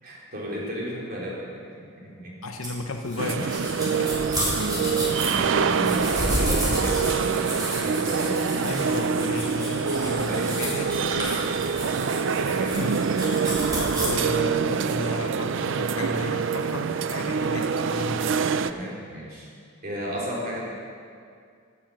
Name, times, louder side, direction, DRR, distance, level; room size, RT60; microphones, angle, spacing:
voice 1, 0.0-1.7 2.0-2.4 4.7-8.6 10.2-10.5 12.3-12.9 18.5-19.5 19.8-20.6, right 1 dB, 45° right, -5 dB, 3.8 m, -34 dB
voice 2, 2.4-4.1 8.6-11.4 12.7-13.0 13.8-18.3, left 2 dB, 90° left, 4 dB, 0.8 m, -34 dB
sound 1, 2.6-14.1, equal, 20° right, 3.9 m, -31 dB
sound 2, 3.2-18.7, right 5 dB, 65° right, 0.5 m, -25 dB
16.5 x 7.6 x 6.5 m, 2.2 s
head